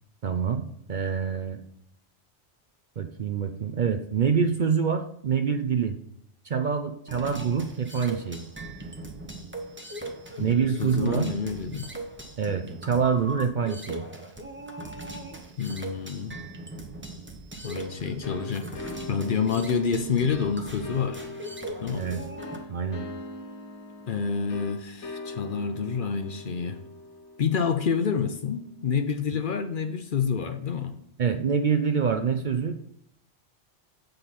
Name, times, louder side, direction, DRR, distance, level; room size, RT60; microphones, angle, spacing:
voice 1, 0.2-1.6 3.0-6.0 6.4-8.4 10.4-11.3 12.4-14.0 21.9-22.3 22.7-23.0 31.2-32.9, right 6 dB, 55° right, 7 dB, 0.6 m, -26 dB
sound 1, 7.1-22.6, right 2 dB, 10° right, 0.8 m, -40 dB
voice 2, 10.4-11.9 15.6-16.4 17.6-21.2 21.8-22.1 24.1-26.8 27.4-31.0, left 6 dB, 55° left, 7 dB, 0.7 m, -28 dB
sound 2, 18.2-28.7, left 2 dB, 80° left, 1.3 m, -41 dB
7.5 x 5.3 x 4.2 m, 0.73 s
omnidirectional pair, 1.2 m